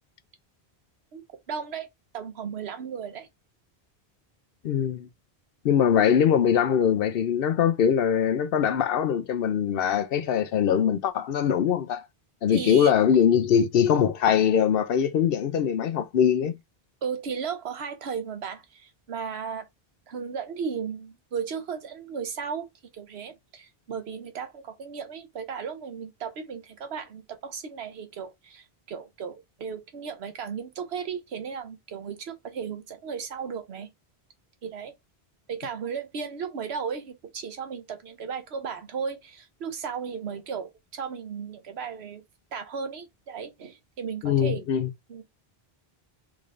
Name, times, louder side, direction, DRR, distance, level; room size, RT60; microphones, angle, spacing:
voice 1, 1.1-1.9 2.1-3.3 12.5-12.9 17.0-19.7 20.1-22.7 22.9-33.9 34.6-34.9 35.5-42.2 42.5-44.6 45.1-45.2, right 6 dB, 80° right, 1.0 m, -35 dB
voice 2, 4.6-5.1 5.6-12.0 12.4-16.6 44.2-44.9, left 8 dB, 70° left, 0.7 m, -22 dB
3.7 x 3.2 x 2.5 m
omnidirectional pair, 1.1 m